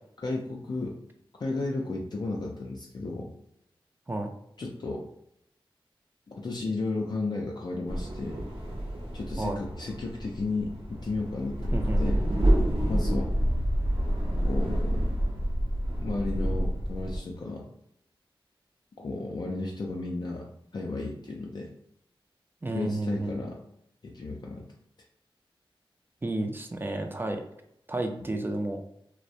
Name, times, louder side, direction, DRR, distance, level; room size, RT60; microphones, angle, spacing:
voice 1, 0.2-1.0 1.4-3.3 4.6-5.1 6.3-8.4 9.1-12.2 12.9-13.4 14.4-15.1 16.0-17.7 19.0-21.7 22.7-23.6 24.0-24.7, left 3 dB, 50° left, -1 dB, 0.3 m, -33 dB
sound 1, 7.9-17.2, equal, 75° right, 0.7 m, -28 dB
voice 2, 11.7-12.1 22.6-23.4 26.2-27.4 27.9-28.8, right 2 dB, 25° right, 4 dB, 0.3 m, -31 dB
2.4 x 2.0 x 2.7 m, 0.76 s
wide cardioid pair, 90°, 9 cm